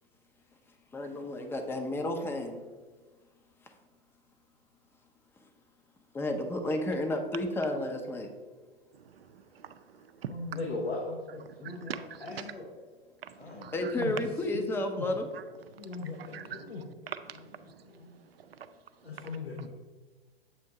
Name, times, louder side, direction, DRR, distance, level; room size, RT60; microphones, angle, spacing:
voice 1, 0.9-2.6 3.6-3.7 6.1-8.3 13.7-15.3, left 1 dB, 10° left, 0.5 m, -32 dB
voice 2, 8.9-10.6 11.5-12.5 13.2-13.9 15.3-15.4 15.7-17.8 18.5-18.6 19.1-19.3 19.6-19.7, right 8 dB, 75° right, 0.5 m, -44 dB
voice 3, 10.3-12.0 12.2-12.6 13.4-14.1 15.0-15.1 15.8-16.9 17.8-18.1 19.0-19.7, left 3 dB, 85° left, 1.0 m, -38 dB
7.6 x 2.6 x 5.8 m
figure-of-eight pair, 110°, 30 cm